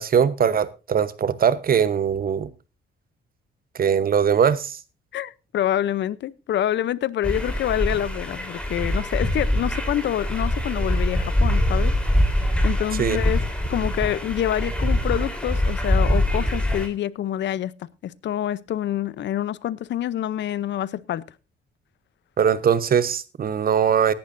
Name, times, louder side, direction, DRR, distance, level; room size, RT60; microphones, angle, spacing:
voice 1, 0.0-2.5 3.8-4.8 13.0-13.2 22.4-24.1, right 7 dB, 45° right, 1.0 m, -21 dB
voice 2, 5.1-12.0 12.4-17.7 18.0-21.2, left 11 dB, 65° left, 0.7 m, -27 dB
sound 1, 7.2-16.9, left 1 dB, 5° left, 3.7 m, -23 dB
17.5 x 11.5 x 2.6 m
cardioid pair, 90°, 20 cm